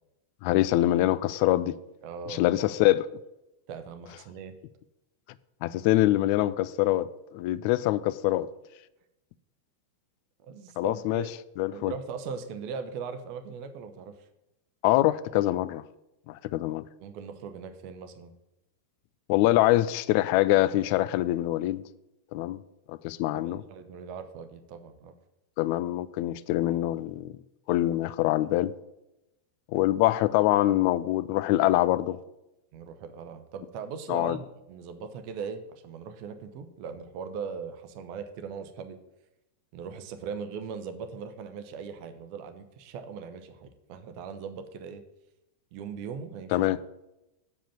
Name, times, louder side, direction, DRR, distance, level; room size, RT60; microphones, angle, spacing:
voice 1, 0.4-1.7 2.3-3.1 5.6-8.5 10.8-11.2 11.6-11.9 14.8-15.8 16.3-16.8 19.3-21.8 22.3-22.6 22.9-23.6 25.6-27.3 27.7-28.7 29.7-32.2 34.1-34.4 46.5-46.8, left 15 dB, 45° left, 0.3 m, -24 dB
voice 2, 2.0-2.6 3.7-4.6 10.4-11.3 11.7-14.3 17.0-18.3 23.3-25.1 32.7-39.0 39.7-45.0 45.7-46.7, right 6 dB, 45° right, 0.8 m, -39 dB
6.9 x 5.1 x 6.8 m
figure-of-eight pair, 90°, 0 cm